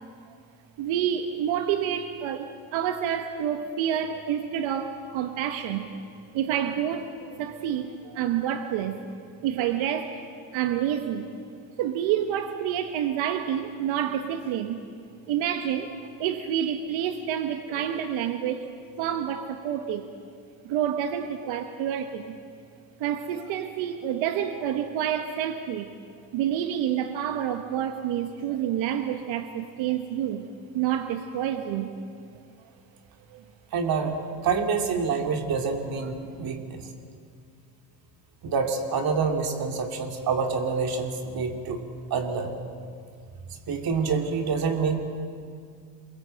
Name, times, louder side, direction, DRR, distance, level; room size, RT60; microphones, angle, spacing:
voice 1, 0.8-6.0 6.3-9.0 9.4-10.2 10.5-11.4 11.8-14.8 15.3-20.1 20.6-22.4 23.0-25.9 26.3-30.4 30.7-31.9 33.3-33.4 36.4-36.5, right 9 dB, 90° right, 7 dB, 1.4 m, -28 dB
voice 2, 33.7-34.2 34.4-36.8 38.4-41.8 42.1-42.5 43.7-45.0, right 5 dB, 50° right, 4 dB, 3.0 m, -27 dB
27.0 x 23.0 x 7.8 m, 2.2 s
cardioid pair, 140°, 45 cm